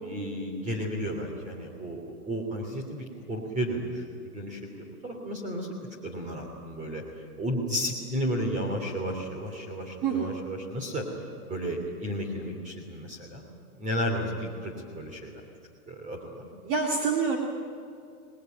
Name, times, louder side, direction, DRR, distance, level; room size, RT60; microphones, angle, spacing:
voice 1, 0.0-7.0 7.4-11.0 11.5-13.5 13.8-15.3 15.9-16.5, equal, 15° right, 2 dB, 3.2 m, -33 dB
voice 2, 10.0-10.3 16.6-17.4, right 5 dB, 35° right, 1 dB, 2.7 m, -26 dB
25.5 x 19.5 x 9.3 m, 2.4 s
hypercardioid pair, 140°, 45 cm